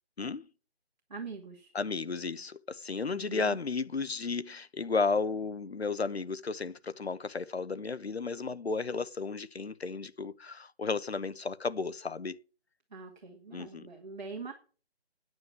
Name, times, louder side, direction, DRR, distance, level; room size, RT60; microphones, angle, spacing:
voice 1, 0.2-0.5 1.7-12.4 13.5-13.9, left 4 dB, 75° left, 1.0 m, -33 dB
voice 2, 1.1-1.7 3.1-3.6 12.9-14.5, right 4 dB, 45° right, 2.3 m, -43 dB
9.5 x 8.6 x 7.3 m
figure-of-eight pair, 160°, 32 cm